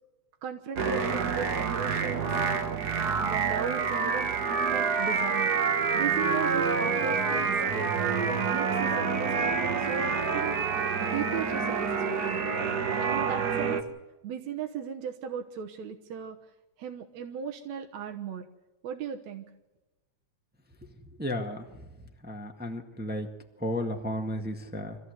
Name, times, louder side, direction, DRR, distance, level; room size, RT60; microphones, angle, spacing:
voice 1, 0.4-2.3 3.2-10.6 11.0-12.4 13.0-13.8 14.2-16.4 16.8-18.5 18.8-19.5, right 7 dB, 65° right, 3 dB, 2.3 m, -37 dB
sound 1, 0.8-13.8, right 5 dB, 50° right, 1.3 m, -27 dB
voice 2, 21.2-21.6 22.2-23.3 23.6-25.0, left 1 dB, 10° right, 3 dB, 0.4 m, -33 dB
25.5 x 15.5 x 8.0 m, 1.1 s
omnidirectional pair, 3.5 m